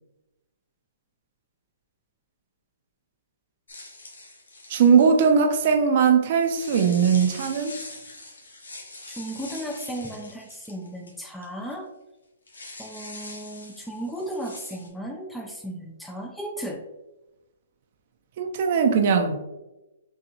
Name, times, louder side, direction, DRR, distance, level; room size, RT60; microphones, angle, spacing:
sound 1, 3.7-5.3 6.3-11.4 11.7-11.8 12.5-14.9, left 2 dB, 85° left, 1.2 m, -43 dB
voice 1, 4.7-7.8 18.4-19.4, right 6 dB, 45° right, 5 dB, 0.5 m, -20 dB
voice 2, 9.2-11.9 12.8-16.8, right 1 dB, 5° left, 2 dB, 0.4 m, -35 dB
5.3 x 2.4 x 2.8 m, 1.0 s
hypercardioid pair, 140°, 0 cm